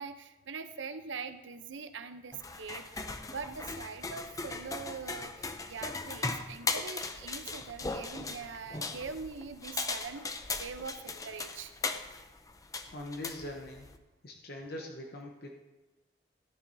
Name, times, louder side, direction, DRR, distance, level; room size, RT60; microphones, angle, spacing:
voice 1, 0.0-11.7, right 5 dB, 85° right, 10 dB, 0.7 m, -43 dB
sound 1, 2.3-14.0, left 3 dB, 20° left, 0.5 m, -38 dB
voice 2, 12.9-13.9 14.2-15.5, left 1 dB, 55° left, 1 dB, 0.9 m, -42 dB
13.5 x 9.9 x 2.7 m, 1.1 s
head